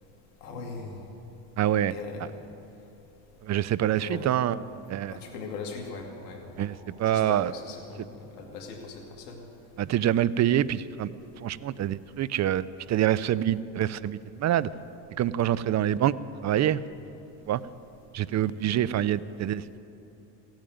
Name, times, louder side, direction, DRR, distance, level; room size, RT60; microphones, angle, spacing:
voice 1, 0.4-1.0 1.9-2.3 4.0-4.2 5.1-6.7 7.1-9.4, left 4 dB, 90° left, 2 dB, 2.4 m, -40 dB
voice 2, 1.6-2.3 3.4-4.6 4.9-5.2 6.6-7.5 8.0-8.1 9.8-11.1 11.4-14.7 15.2-16.2 16.4-16.8 17.5-17.6 18.1-19.8, right 11 dB, 35° right, 18 dB, 0.5 m, -26 dB
16.0 x 8.9 x 9.3 m, 2.9 s
supercardioid pair, 80°, 48 cm